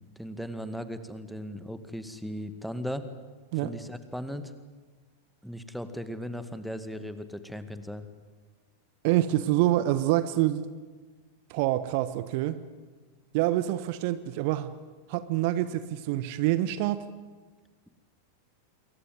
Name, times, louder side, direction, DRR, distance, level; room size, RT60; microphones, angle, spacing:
voice 1, 0.0-3.1 3.6-4.5 5.4-8.1, equal, ahead, 10 dB, 2.1 m, -37 dB
voice 2, 9.0-10.6 11.5-12.6 13.3-14.7 15.1-17.1, right 14 dB, 45° right, 13 dB, 1.2 m, -26 dB
27.5 x 23.0 x 9.3 m, 1.3 s
figure-of-eight pair, 90°, 0 cm